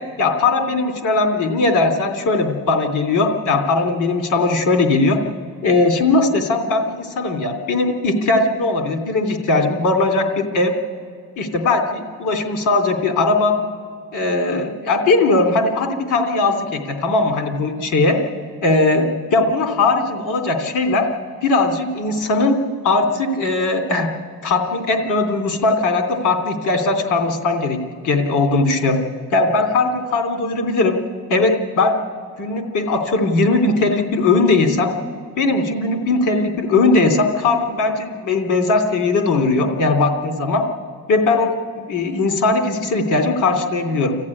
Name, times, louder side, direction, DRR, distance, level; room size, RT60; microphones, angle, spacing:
voice 1, 0.2-5.2 5.6-10.7 11.4-13.6 14.1-18.2 18.6-21.1 21.4-22.6 22.8-24.1 24.4-27.8 28.0-29.0 29.3-31.0 31.3-31.9 32.4-34.9 35.4-40.6 41.1-41.5 41.9-44.2, left 3 dB, 85° left, 3 dB, 3.0 m, -19 dB
27.5 x 14.5 x 9.8 m, 2.2 s
cardioid pair, 90°, 30 cm